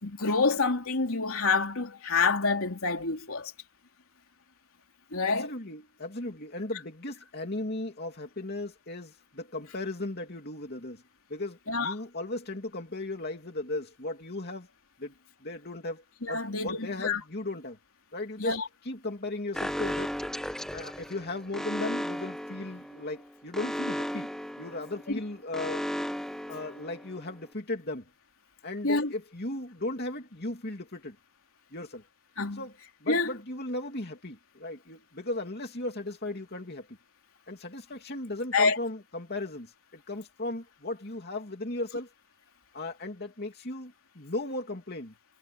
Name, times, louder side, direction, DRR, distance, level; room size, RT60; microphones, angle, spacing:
voice 1, 0.0-3.5 5.1-5.5 11.7-11.9 16.2-17.2 18.4-18.6 28.8-29.1 32.4-32.6 33.1-33.3 38.5-38.8, left 4 dB, 65° left, 3.5 m, -27 dB
voice 2, 5.3-11.0 11.3-14.7 15.0-15.1 15.4-17.8 18.1-20.1 20.7-24.3 24.6-25.9 26.5-28.1 28.6-31.2 31.7-32.0 32.5-37.0 37.5-42.1 42.7-45.1, left 2 dB, 45° left, 2.8 m, -36 dB
Alarm, 19.5-27.3, equal, ahead, 1.2 m, -35 dB
head